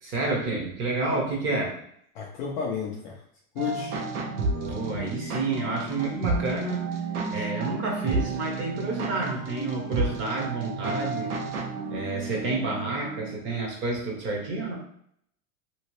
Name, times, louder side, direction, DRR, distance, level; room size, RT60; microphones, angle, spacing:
voice 1, 0.0-1.7 4.5-7.0 7.3-11.3 11.9-14.8, right 3 dB, 25° right, 0 dB, 0.8 m, -29 dB
voice 2, 2.1-3.2 3.5-4.0, left 6 dB, 35° left, -2 dB, 0.4 m, -32 dB
sound 1, 3.6-13.4, right 3 dB, 90° right, 1.1 m, -31 dB
2.9 x 2.8 x 3.0 m, 0.68 s
supercardioid pair, 150°, 44 cm